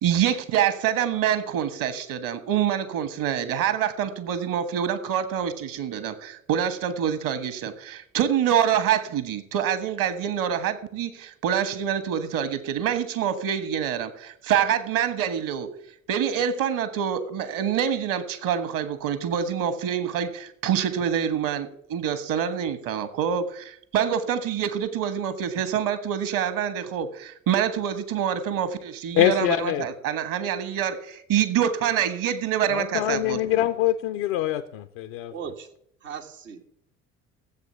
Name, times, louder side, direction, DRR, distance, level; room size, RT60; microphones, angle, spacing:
voice 1, 0.0-15.7 16.1-33.7, right 9 dB, 55° right, 13 dB, 1.5 m, -26 dB
voice 2, 29.2-29.8 32.7-35.3, left 12 dB, 65° left, 8 dB, 0.7 m, -24 dB
voice 3, 35.3-35.7 36.0-36.6, right 7 dB, 80° right, 1 dB, 1.5 m, -37 dB
15.0 x 7.7 x 6.9 m, 0.71 s
figure-of-eight pair, 55°, 38 cm